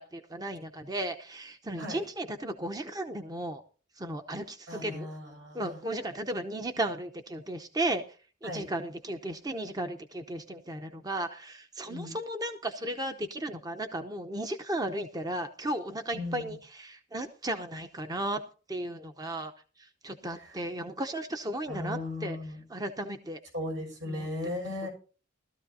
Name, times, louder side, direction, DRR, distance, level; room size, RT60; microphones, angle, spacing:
voice 1, 0.0-3.6 4.0-5.1 5.5-8.0 8.4-18.4 18.7-19.5 19.8-23.4 24.0-24.5, right 1 dB, 20° right, 7 dB, 0.7 m, -35 dB
voice 2, 4.7-5.6 8.4-8.6 11.9-12.1 16.1-16.5 21.7-22.6 23.5-24.9, left 2 dB, 70° right, 1 dB, 6.6 m, -36 dB
18.5 x 13.0 x 2.8 m, 0.38 s
head